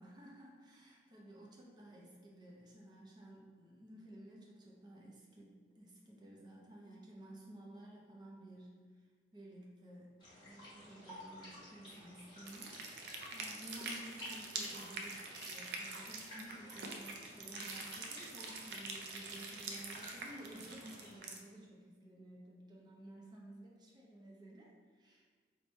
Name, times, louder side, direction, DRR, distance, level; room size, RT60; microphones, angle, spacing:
voice 1, 0.0-9.1 9.3-25.3, right 1 dB, 25° right, -3 dB, 0.5 m, -54 dB
sound 1, 10.2-21.2, left 1 dB, 25° left, 1.3 m, -54 dB
sound 2, 12.4-21.4, right 3 dB, 75° right, 0.4 m, -45 dB
3.1 x 2.1 x 4.0 m, 1.5 s
head